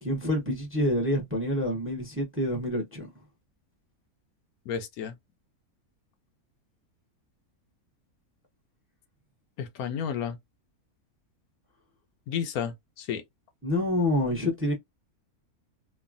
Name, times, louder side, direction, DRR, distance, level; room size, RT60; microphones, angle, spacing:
voice 1, 0.0-3.1 13.6-14.7, left 1 dB, 10° right, 0.7 m, -27 dB
voice 2, 4.7-5.1 9.6-10.4 12.3-13.2, left 8 dB, 80° left, 1.1 m, -32 dB
3.1 x 2.2 x 2.4 m
omnidirectional pair, 1.5 m